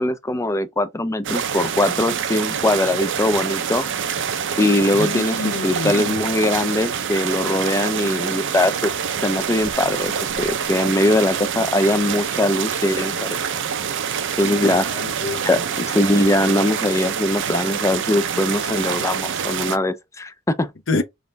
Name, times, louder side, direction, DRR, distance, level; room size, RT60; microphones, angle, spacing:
voice 1, 0.0-3.9 4.6-8.9 9.2-10.1 10.4-13.4 14.4-14.9 15.4-20.7, left 1 dB, 15° left, 0.4 m, -21 dB
sound 1, 1.2-19.8, right 7 dB, 55° right, 0.5 m, -26 dB
voice 2, 4.9-6.3 14.4-15.5 20.9-21.0, left 3 dB, 60° left, 0.7 m, -27 dB
4.1 x 2.5 x 3.3 m
head